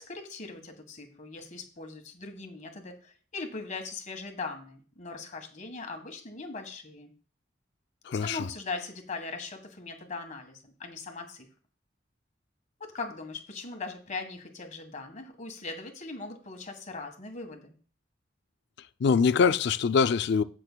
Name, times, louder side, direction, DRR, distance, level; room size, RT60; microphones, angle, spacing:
voice 1, 0.0-7.1 8.1-11.5 12.8-17.7, left 3 dB, 40° left, 1.5 m, -40 dB
voice 2, 8.1-8.5 19.0-20.4, left 5 dB, 65° left, 0.4 m, -23 dB
15.5 x 6.2 x 2.3 m
head